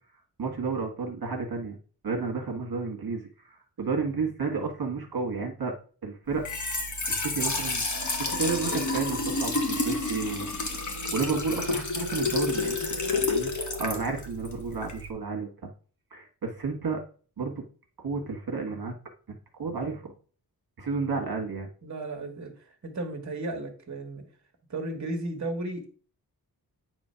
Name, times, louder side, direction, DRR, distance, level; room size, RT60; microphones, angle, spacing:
voice 1, 0.4-1.8 2.0-5.7 6.0-6.4 7.1-7.8 8.2-13.5 13.8-15.7 16.1-17.0 17.4-17.6 18.0-18.9 19.3-20.1 20.8-21.7, right 4 dB, 70° right, 2 dB, 1.4 m, -32 dB
Trickle dribble / Fill (with liquid), 6.3-15.1, left 3 dB, 50° left, 1.3 m, -30 dB
voice 2, 21.8-24.2 24.7-25.8, right 2 dB, 50° right, 3 dB, 1.4 m, -34 dB
9.0 x 3.1 x 5.6 m, 0.40 s
wide cardioid pair, 125°, 38 cm